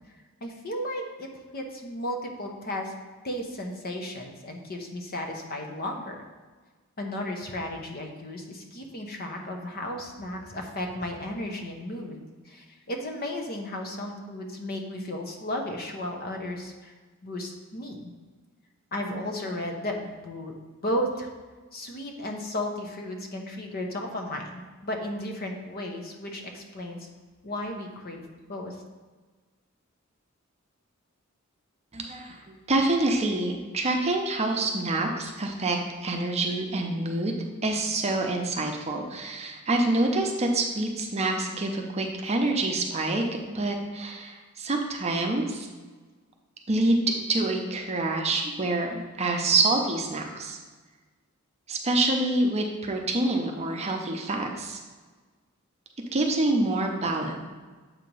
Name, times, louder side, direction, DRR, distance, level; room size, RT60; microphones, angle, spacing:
voice 1, 0.4-3.0 3.2-6.2 7.0-12.2 12.4-16.9 17.2-18.1 18.9-20.5 20.8-21.3 21.7-27.1 27.4-28.8, left 1 dB, 50° left, 2 dB, 0.8 m, -34 dB
voice 2, 31.9-43.2 43.5-45.7 46.7-47.0 47.3-50.6 51.7-54.8 56.1-57.4, right 2 dB, 30° right, 2 dB, 0.7 m, -26 dB
7.5 x 2.9 x 5.3 m, 1.3 s
head